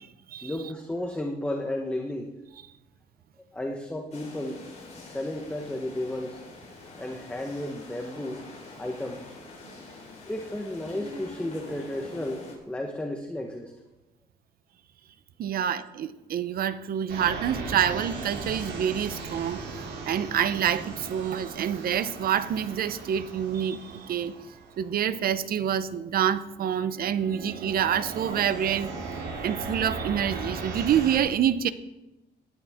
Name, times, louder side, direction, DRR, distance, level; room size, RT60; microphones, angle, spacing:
voice 1, 0.4-2.3 3.5-4.6 5.0-6.4 7.0-8.5 8.8-9.4 10.3-13.7, left 1 dB, 5° left, 2 dB, 1.1 m, -33 dB
sound 1, 4.1-12.5, left 3 dB, 40° left, 4.0 m, -45 dB
voice 2, 15.4-24.3 24.8-28.9 29.4-31.7, right 9 dB, 60° right, 14 dB, 0.7 m, -27 dB
sound 2, 17.1-25.4 26.1-26.4 26.9-31.2, right 4 dB, 90° right, 3.3 m, -38 dB
18.5 x 11.0 x 3.6 m, 1.0 s
cardioid pair, 145°, 17 cm